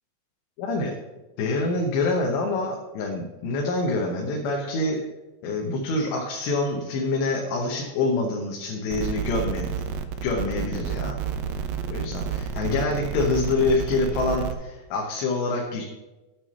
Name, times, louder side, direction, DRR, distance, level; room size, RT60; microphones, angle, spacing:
voice 1, 0.6-0.9 1.4-5.0 5.4-9.7 10.2-11.2 11.9-15.8, left 3 dB, 85° left, 0 dB, 3.3 m, -26 dB
sound 1, 8.9-14.5, right 8 dB, 85° right, 2.9 m, -30 dB
8.3 x 6.2 x 7.0 m, 1.1 s
omnidirectional pair, 4.9 m